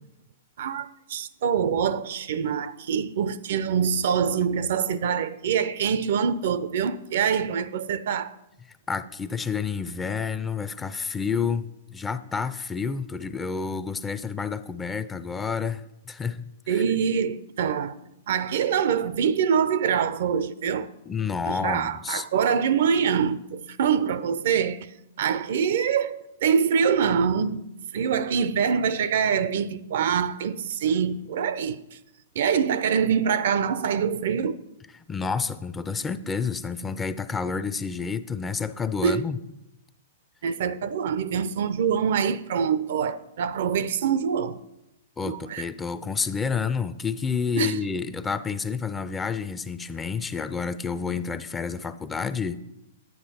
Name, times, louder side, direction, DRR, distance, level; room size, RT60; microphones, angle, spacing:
voice 1, 0.6-8.3 16.7-17.9 18.3-20.9 21.5-24.9 25.2-27.6 27.9-31.8 32.4-34.6 39.0-39.2 40.4-44.6 45.2-45.6 47.6-47.8, right 7 dB, 60° right, 0.5 m, -25 dB
voice 2, 8.9-16.8 21.1-22.3 35.1-39.4 45.2-52.6, left 5 dB, 15° left, 0.5 m, -29 dB
9.7 x 9.4 x 4.2 m
figure-of-eight pair, 110°, 0 cm